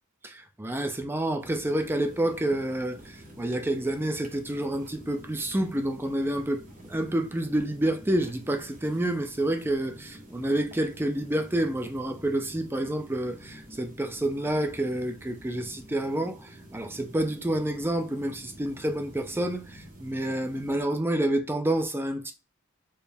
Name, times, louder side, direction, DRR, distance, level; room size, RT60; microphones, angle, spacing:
voice 1, 0.2-6.6 6.9-22.3, right 1 dB, 10° right, 0.5 m, -28 dB
sound 1, 1.4-20.8, equal, 40° right, 0.9 m, -48 dB
4.4 x 2.0 x 3.4 m
head